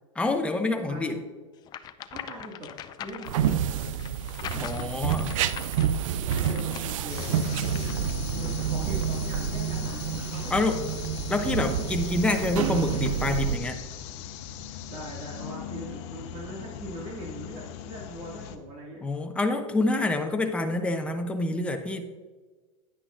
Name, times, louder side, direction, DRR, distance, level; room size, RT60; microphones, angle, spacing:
voice 1, 0.2-1.2 4.5-5.3 10.5-10.9 11.3-13.8 19.0-22.3, left 2 dB, 5° left, 5 dB, 0.7 m, -27 dB
sound 1, 1.6-8.1, left 10 dB, 25° left, 0.4 m, -42 dB
voice 2, 2.1-2.7 3.0-4.1 6.2-8.0 8.4-10.8 14.9-19.0, right 1 dB, 40° right, -3 dB, 2.1 m, -41 dB
sound 2, 3.3-13.6, right 9 dB, 70° right, 0.5 m, -29 dB
sound 3, 7.1-18.6, left 9 dB, 60° left, 0.9 m, -39 dB
9.9 x 9.7 x 2.5 m, 1.3 s
supercardioid pair, 130°, 17 cm